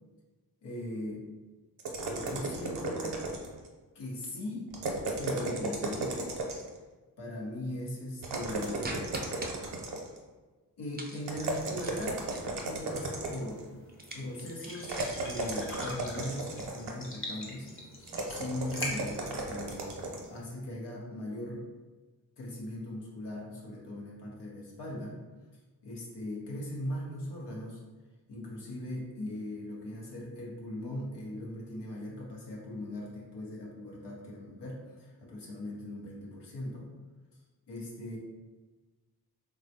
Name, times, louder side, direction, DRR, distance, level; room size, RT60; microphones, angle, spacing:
voice 1, 0.6-1.2 2.1-3.2 3.9-4.7 5.2-6.3 7.2-9.0 10.8-12.3 12.6-13.7 14.1-17.7 18.3-19.9 20.3-21.7 22.4-25.2 25.8-27.8 28.3-36.9 37.7-38.2, left 1 dB, 85° left, -3 dB, 0.9 m, -39 dB
sound 1, 1.8-3.7 4.7-6.8 8.2-10.2 11.3-13.6 14.8-17.1 18.1-20.3, right 2 dB, 70° right, 0.7 m, -35 dB
sound 2, 8.8-9.5 10.9-12.8 13.9-15.4, right 2 dB, 25° right, 0.5 m, -42 dB
sound 3, 12.0-20.5, left 1 dB, 30° left, 0.9 m, -44 dB
3.4 x 2.3 x 2.7 m, 1.2 s
cardioid pair, 50°, 41 cm